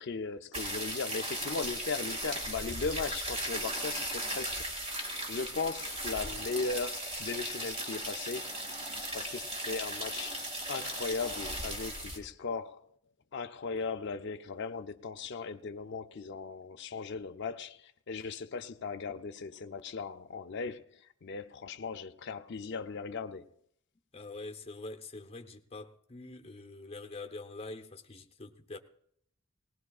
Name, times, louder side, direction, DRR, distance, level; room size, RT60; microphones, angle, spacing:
voice 1, 0.0-5.0 5.3-8.5 9.1-12.9 13.3-23.5, left 4 dB, 55° left, 0.5 m, -38 dB
Water Pouring Onto Stone, 0.5-12.2, right 1 dB, 30° right, 2.0 m, -37 dB
voice 2, 24.1-28.8, left 2 dB, 30° left, 0.9 m, -45 dB
19.0 x 19.0 x 2.4 m
head